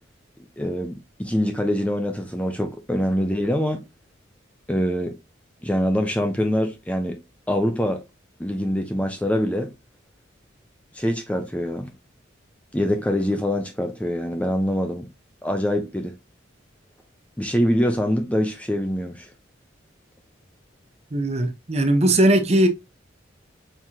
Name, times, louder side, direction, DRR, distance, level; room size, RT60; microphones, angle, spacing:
voice 1, 0.6-3.8 4.7-5.2 5.6-7.2 7.5-8.0 8.4-9.7 10.9-11.9 12.7-15.1 15.4-16.1 17.4-19.3, equal, 5° left, 0.5 m, -24 dB
voice 2, 21.1-22.7, right 1 dB, 35° right, 0.7 m, -19 dB
4.6 x 3.6 x 2.7 m
head